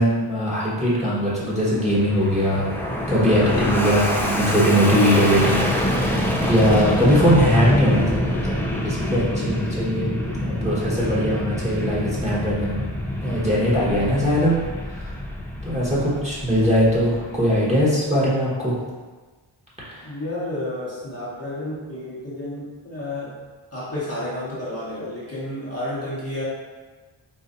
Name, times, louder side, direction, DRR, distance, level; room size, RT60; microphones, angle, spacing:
voice 1, 0.0-2.7 3.1-12.8 13.2-14.5 14.8-15.1 15.6-18.8 19.8-20.0, equal, 15° right, -8 dB, 1.2 m, -21 dB
Fixed-wing aircraft airplane, 1.3-17.9, equal, 5° left, 0.4 m, -26 dB
voice 2, 20.0-23.4 23.7-26.4, left 1 dB, 30° left, -8 dB, 0.9 m, -31 dB
4.1 x 2.5 x 2.5 m, 1.3 s
cardioid pair, 50°, 49 cm